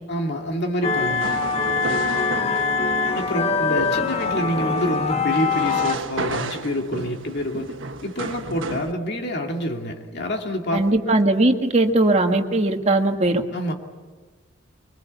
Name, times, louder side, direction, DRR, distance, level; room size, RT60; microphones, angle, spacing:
voice 1, 0.1-1.4 3.1-7.7 8.0-10.8 13.5-13.7, equal, 55° left, 2 dB, 2.4 m, -27 dB
sound 1, 0.8-6.0, left 4 dB, 30° left, 1.0 m, -23 dB
sound 2, 1.1-8.9, right 3 dB, 70° right, 1.3 m, -33 dB
voice 2, 10.7-13.4, right 2 dB, 35° right, 4 dB, 1.8 m, -19 dB
24.0 x 24.0 x 8.2 m, 1.4 s
head